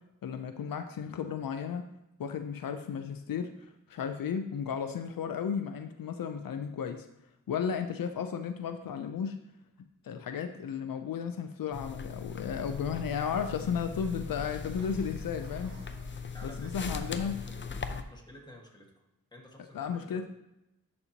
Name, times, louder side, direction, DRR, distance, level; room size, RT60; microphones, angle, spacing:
voice 1, 0.2-1.8 2.2-7.1 7.5-9.4 10.0-15.7 16.4-17.4 19.7-20.3, left 7 dB, 85° left, 7 dB, 0.5 m, -34 dB
sound 1, 11.7-18.0, left 5 dB, 35° left, 0.5 m, -39 dB
Train / Sliding door, 13.0-18.1, right 2 dB, 75° right, 1.7 m, -57 dB
voice 2, 16.3-17.6 18.1-19.0 19.3-20.3, left 1 dB, 15° left, -1 dB, 1.7 m, -51 dB
11.0 x 4.3 x 2.8 m, 0.88 s
wide cardioid pair, 70°, 33 cm